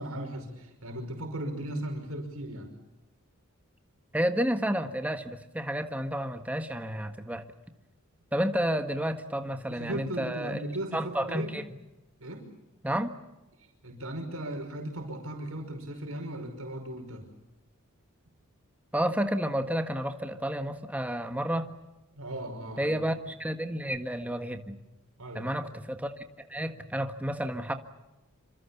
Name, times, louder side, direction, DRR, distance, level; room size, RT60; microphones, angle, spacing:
voice 1, 0.0-2.7 9.7-11.5 12.2-12.5 13.6-17.3 22.2-23.0 25.2-25.5, right 1 dB, 75° right, 3 dB, 5.6 m, -37 dB
voice 2, 4.1-7.4 8.3-10.6 10.9-11.6 12.8-13.1 18.9-21.7 22.8-24.8 25.3-27.7, equal, 5° right, 7 dB, 1.6 m, -31 dB
27.5 x 26.0 x 7.2 m, 1.0 s
head